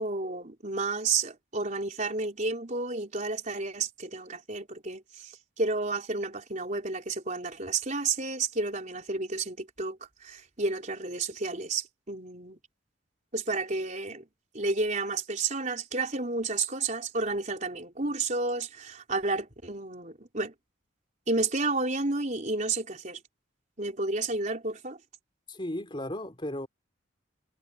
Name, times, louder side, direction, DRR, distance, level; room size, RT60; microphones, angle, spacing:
voice 1, 0.0-12.6 13.3-14.2 14.5-20.5 21.3-23.2 23.8-25.0, right 3 dB, 40° right, 4.3 m, -31 dB
voice 2, 25.5-26.7, left 1 dB, 25° left, 4.0 m, -35 dB
head